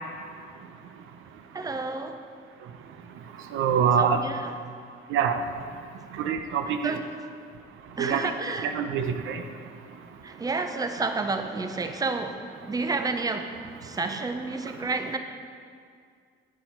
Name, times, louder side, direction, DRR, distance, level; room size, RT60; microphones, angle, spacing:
voice 1, 1.5-2.2 4.0-4.6 6.8-7.0 8.0-8.7 10.2-12.4 12.7-13.5 13.8-15.2, right 3 dB, 20° right, 7 dB, 0.6 m, -30 dB
voice 2, 3.5-4.2 5.1-5.4 6.2-6.9 8.0-8.2 8.6-9.4, right 7 dB, 85° right, 7 dB, 0.7 m, -24 dB
9.9 x 7.0 x 4.5 m, 2.2 s
cardioid pair, 90°, 20 cm